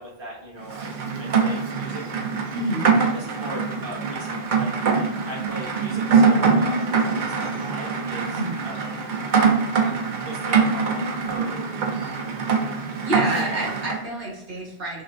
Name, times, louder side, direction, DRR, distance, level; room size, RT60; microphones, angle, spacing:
voice 1, 0.0-2.0 3.0-8.9 9.7-11.6 13.3-13.7, right 1 dB, 25° right, -4 dB, 1.1 m, -39 dB
Rain, 0.7-14.0, right 5 dB, 55° right, 0.7 m, -23 dB
voice 2, 2.5-2.9 8.3-8.6 13.0-15.0, right 1 dB, 70° right, -4 dB, 1.5 m, -28 dB
6.1 x 2.1 x 2.5 m, 0.83 s
omnidirectional pair, 1.0 m